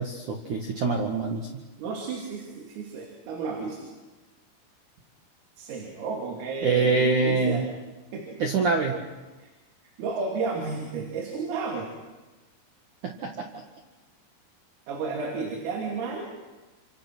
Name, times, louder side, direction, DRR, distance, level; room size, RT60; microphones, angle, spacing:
voice 1, 0.0-1.5 6.6-7.6 8.4-9.0 13.0-13.6, right 4 dB, 55° right, 2 dB, 2.3 m, -25 dB
voice 2, 1.8-3.9 5.6-7.6 8.1-8.4 9.4-9.5 10.0-11.9 14.9-16.3, right 4 dB, 80° right, 0 dB, 5.6 m, -32 dB
29.0 x 27.0 x 6.2 m, 1.2 s
omnidirectional pair, 5.9 m